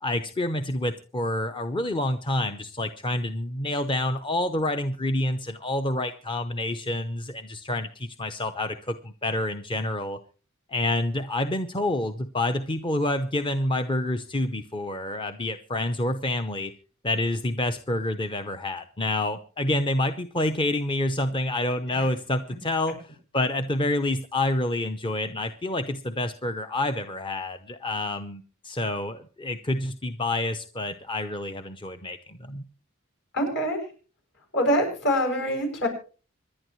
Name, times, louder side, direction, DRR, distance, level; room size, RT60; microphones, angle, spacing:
voice 1, 0.0-10.2 10.7-16.7 17.0-32.6, left 1 dB, 25° left, 8 dB, 0.7 m, -28 dB
voice 2, 33.3-33.8 34.5-35.9, equal, 60° left, 3 dB, 7.3 m, -25 dB
26.0 x 11.0 x 3.1 m, 0.38 s
head